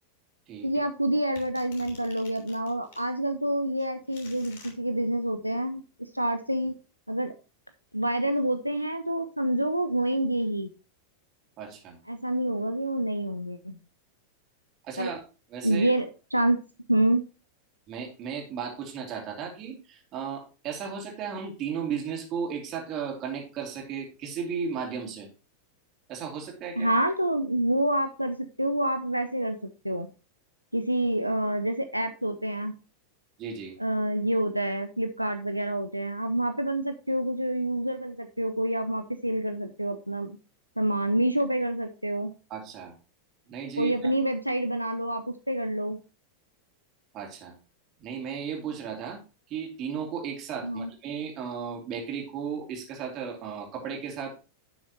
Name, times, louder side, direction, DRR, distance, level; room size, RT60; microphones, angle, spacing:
voice 1, 0.6-6.8 7.1-7.3 7.9-10.7 12.1-13.8 15.0-15.1 15.6-16.6 16.9-17.3 26.8-29.6 29.8-30.1 30.7-32.7 33.8-40.4 40.8-42.3 43.8-46.0 50.6-50.9, right 1 dB, 90° right, 7 dB, 0.6 m, -27 dB
sound 1, 1.4-3.1 3.8-4.7, left 4 dB, 55° left, 3.3 m, -50 dB
voice 2, 11.6-12.0 14.8-15.2 15.5-15.9 17.9-25.3 26.1-26.9 33.4-33.8 42.5-43.0 43.5-44.1 47.1-47.6 48.0-49.2 49.5-54.3, right 7 dB, 35° right, 1 dB, 2.9 m, -35 dB
11.0 x 6.3 x 3.1 m, 0.32 s
figure-of-eight pair, 90°, 0 cm